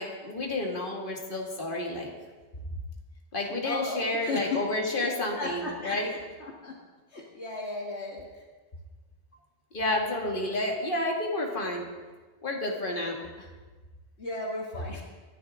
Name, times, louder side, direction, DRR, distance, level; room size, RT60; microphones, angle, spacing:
voice 1, 0.0-2.1 3.3-6.1 9.7-11.9 12.4-13.5, left 1 dB, 50° left, 0 dB, 2.3 m, -30 dB
voice 2, 3.6-4.6 5.0-6.8 7.1-8.4 14.2-15.0, left 3 dB, 75° left, -1 dB, 2.0 m, -35 dB
24.5 x 10.5 x 3.7 m, 1.3 s
omnidirectional pair, 1.1 m